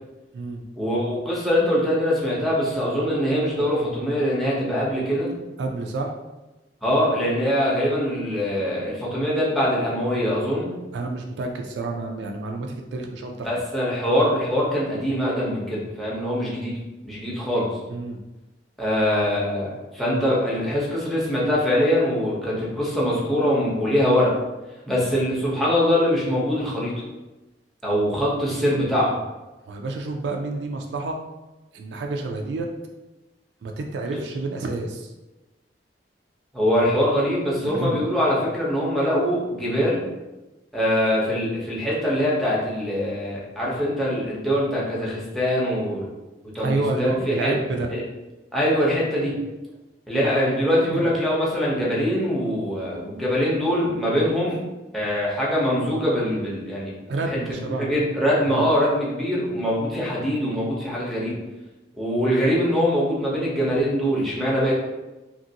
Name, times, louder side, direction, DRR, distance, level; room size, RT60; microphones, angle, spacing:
voice 1, 0.8-5.3 6.8-10.7 13.4-16.7 17.0-17.7 18.8-24.3 24.9-26.9 27.8-29.2 36.5-40.0 40.7-46.1 46.5-47.6 47.9-48.0 48.5-49.3 50.1-54.6 54.9-56.9 57.3-61.4 62.0-64.7, equal, ahead, -6 dB, 0.7 m, -23 dB
voice 2, 5.6-6.1 10.9-13.6 17.9-18.2 29.7-31.2 31.7-32.7 33.6-35.1 37.7-38.0 46.6-47.9 50.9-51.1 57.1-58.0 58.5-58.7, right 3 dB, 70° right, 2 dB, 0.3 m, -29 dB
2.9 x 2.5 x 2.7 m, 1.1 s
head